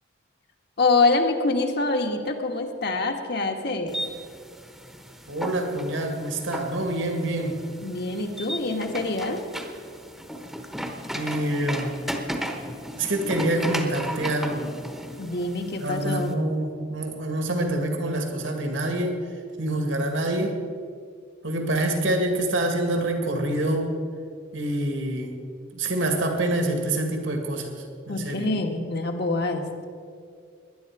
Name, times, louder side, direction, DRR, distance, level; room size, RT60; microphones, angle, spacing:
voice 1, 0.8-4.0 7.8-9.4 15.2-16.3 28.1-29.6, left 3 dB, 55° left, 3 dB, 1.5 m, -25 dB
sound 1, 3.9-16.3, equal, ahead, 1.0 m, -35 dB
voice 2, 5.3-7.6 11.1-12.0 13.0-14.7 15.8-19.1 19.6-20.6 21.4-23.9 24.5-25.4 25.7-28.5, right 1 dB, 70° right, 3 dB, 2.0 m, -26 dB
19.0 x 11.0 x 4.8 m, 2.2 s
head